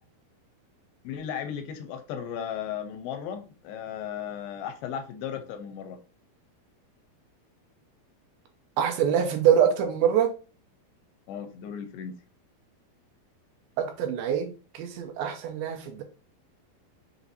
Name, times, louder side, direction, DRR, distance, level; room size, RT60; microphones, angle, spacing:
voice 1, 1.0-6.0 11.3-12.2, left 8 dB, 85° left, 2.3 m, -35 dB
voice 2, 8.8-10.3 13.8-16.0, right 8 dB, 85° right, 2.3 m, -24 dB
5.9 x 2.5 x 2.7 m
omnidirectional pair, 4.3 m